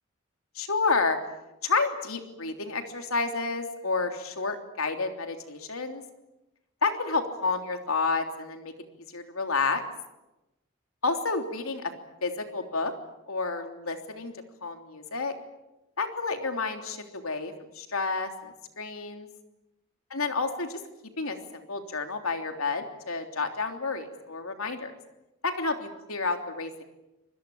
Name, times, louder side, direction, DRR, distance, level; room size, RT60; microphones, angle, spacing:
voice 1, 0.5-1.2 1.6-6.0 6.8-8.7 9.1-9.8 11.0-11.9 12.2-12.9 13.3-14.3 14.6-15.3 16.0-19.3 20.1-20.8 21.2-24.9 25.4-26.8, left 4 dB, 80° left, 5 dB, 3.3 m, -30 dB
26.0 x 21.0 x 8.7 m, 0.95 s
head